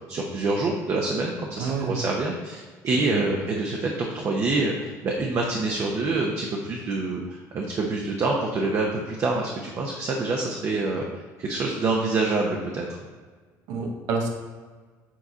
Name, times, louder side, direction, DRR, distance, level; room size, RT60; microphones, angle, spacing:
voice 1, 0.1-11.0 11.4-12.9, right 3 dB, 45° right, -1 dB, 0.9 m, -26 dB
voice 2, 1.6-2.0 3.1-3.3 13.7-14.3, right 4 dB, 75° right, 1 dB, 1.0 m, -28 dB
7.6 x 4.1 x 4.0 m, 1.4 s
cardioid pair, 110°, 7 cm